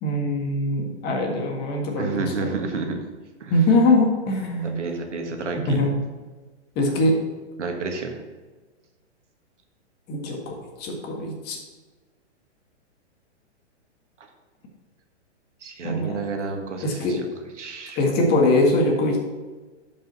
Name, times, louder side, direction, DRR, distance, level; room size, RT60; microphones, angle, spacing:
voice 1, 0.0-2.5 3.5-4.8 5.7-5.9 6.7-7.2 10.1-11.6 15.8-16.2 16.8-17.1 18.0-19.2, left 2 dB, 30° left, 1 dB, 1.7 m, -22 dB
voice 2, 2.0-3.0 3.4-3.6 4.6-5.8 7.6-8.2 15.6-17.2 17.6-18.0, right 4 dB, 85° right, 3 dB, 1.7 m, -30 dB
11.5 x 5.4 x 4.1 m, 1.3 s
hypercardioid pair, 135°, 35 cm